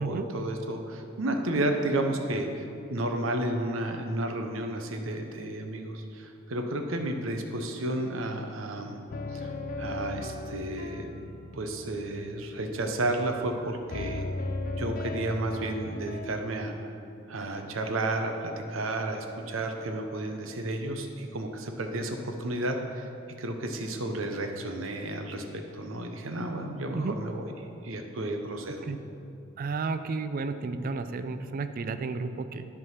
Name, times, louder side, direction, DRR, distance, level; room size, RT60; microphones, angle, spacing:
voice 1, 0.0-9.0 9.3-11.1 11.5-14.3 14.8-16.9 17.3-23.1 23.4-27.5 27.8-28.8, right 1 dB, 80° right, 4 dB, 0.8 m, -32 dB
sound 1, 9.1-13.6 13.9-16.3, left 2 dB, 45° left, 0.5 m, -37 dB
voice 2, 26.9-27.2 28.8-29.0 29.6-32.7, right 4 dB, 45° right, 10 dB, 0.4 m, -32 dB
11.0 x 3.7 x 5.7 m, 2.7 s
head